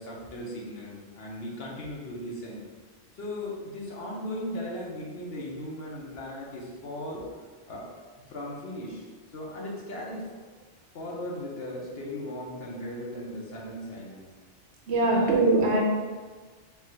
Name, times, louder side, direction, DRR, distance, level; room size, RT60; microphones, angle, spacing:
voice 1, 0.0-2.6 3.1-7.3 7.7-7.8 8.3-9.1 9.3-10.5 10.9-14.3 15.1-15.3, left 1 dB, 60° left, -3 dB, 1.1 m, -37 dB
voice 2, 14.9-15.8, right 2 dB, 75° right, -1 dB, 1.0 m, -22 dB
3.5 x 2.5 x 4.3 m, 1.4 s
omnidirectional pair, 1.2 m